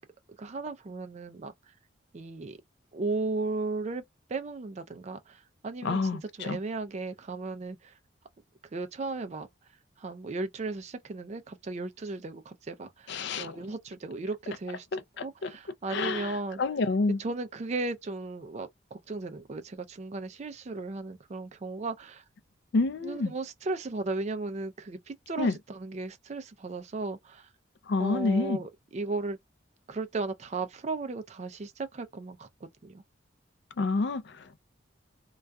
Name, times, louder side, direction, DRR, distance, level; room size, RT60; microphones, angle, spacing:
voice 1, 0.4-1.5 2.1-2.6 2.9-4.0 4.3-7.9 8.7-9.5 10.0-16.6 17.2-22.2 23.0-27.5 28.0-29.4 29.9-33.0, right 3 dB, 35° right, 0.4 m, -36 dB
voice 2, 5.8-6.6 13.1-13.6 14.9-15.5 15.9-17.2 22.7-23.3 25.4-25.6 27.9-28.6 33.8-34.6, left 3 dB, 55° left, 0.4 m, -29 dB
2.3 x 2.2 x 2.5 m
head